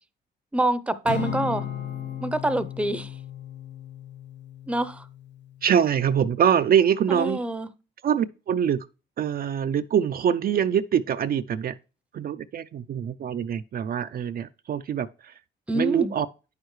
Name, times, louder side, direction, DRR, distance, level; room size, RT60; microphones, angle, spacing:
voice 1, 0.5-1.7 2.2-3.1 4.7-5.1 7.1-7.7 15.7-16.1, right 1 dB, 5° right, 0.6 m, -26 dB
Acoustic guitar / Strum, 1.0-5.5, left 7 dB, 65° left, 1.1 m, -35 dB
voice 2, 5.6-7.4 8.0-8.9 9.2-11.8 12.1-15.3 15.7-16.3, right 8 dB, 50° right, 0.4 m, -24 dB
9.2 x 6.6 x 3.1 m
cardioid pair, 90°, 20 cm